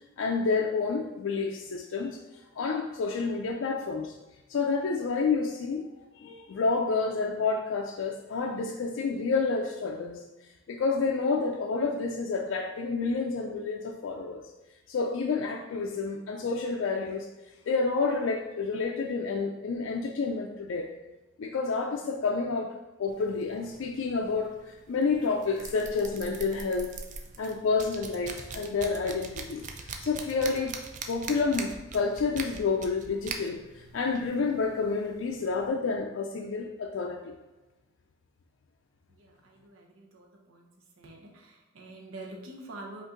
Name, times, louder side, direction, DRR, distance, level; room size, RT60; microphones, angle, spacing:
voice 1, 0.2-2.2 2.6-4.1 4.5-5.9 6.2-10.2 10.7-14.4 14.9-17.3 17.7-20.9 21.4-22.7 23.0-26.9 27.4-30.7 31.1-37.3, left 4 dB, 75° left, 1 dB, 0.4 m, -29 dB
sound 1, 23.1-35.7, right 4 dB, 35° right, 0.4 m, -43 dB
voice 2, 39.2-40.7 41.0-43.0, right 2 dB, 85° right, 0 dB, 0.8 m, -46 dB
5.3 x 2.6 x 3.7 m, 1.1 s
head